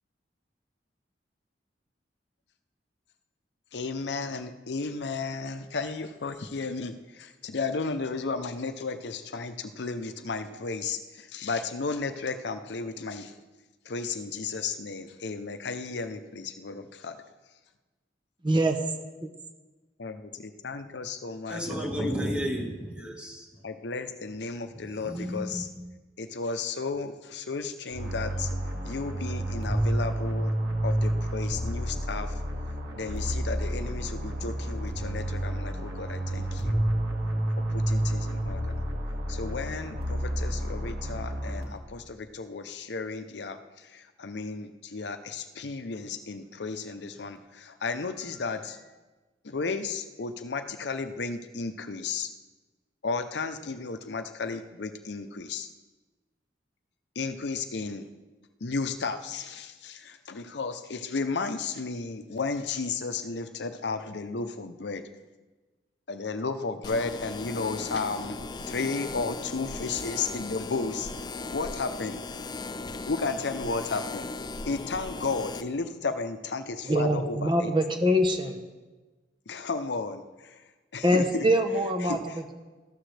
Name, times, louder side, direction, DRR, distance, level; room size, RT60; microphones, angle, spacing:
voice 1, 3.7-13.3 13.8-17.2 20.0-22.1 23.6-25.7 26.2-28.5 28.8-30.5 30.8-32.3 33.0-36.7 37.7-38.7 39.3-48.8 49.4-52.3 53.0-55.7 57.2-58.1 58.6-65.1 66.1-68.4 68.7-71.1 71.5-72.2 73.1-74.3 74.7-77.7 79.5-80.6 80.9-81.5 82.0-82.5, left 4 dB, 70° left, 9 dB, 0.7 m, -33 dB
voice 2, 18.4-18.8 19.2-19.3 76.9-78.6 81.0-82.5, equal, 25° right, 5 dB, 0.9 m, -24 dB
voice 3, 21.5-23.5 25.0-25.9, equal, 5° right, 1 dB, 1.6 m, -32 dB
sound 1, 27.9-42.0, right 1 dB, 65° right, 2.1 m, -30 dB
sound 2, 66.8-75.6, left 3 dB, 25° left, 0.5 m, -37 dB
13.5 x 12.5 x 3.3 m, 1.2 s
head